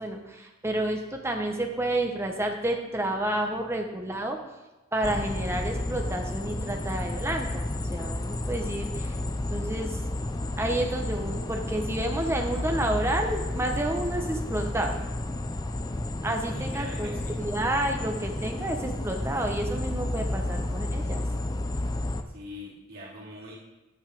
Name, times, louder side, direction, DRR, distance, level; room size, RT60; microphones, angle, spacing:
voice 1, 0.0-4.4 4.9-7.6 7.9-9.2 9.5-10.0 10.6-15.0 16.2-21.2, right 1 dB, 15° right, 3 dB, 1.0 m, -30 dB
sound 1, 5.0-22.2, left 1 dB, 20° left, 0.5 m, -31 dB
voice 2, 16.5-17.3 22.3-23.5, equal, 50° right, -7 dB, 3.3 m, -42 dB
9.7 x 5.6 x 6.4 m, 1.1 s
head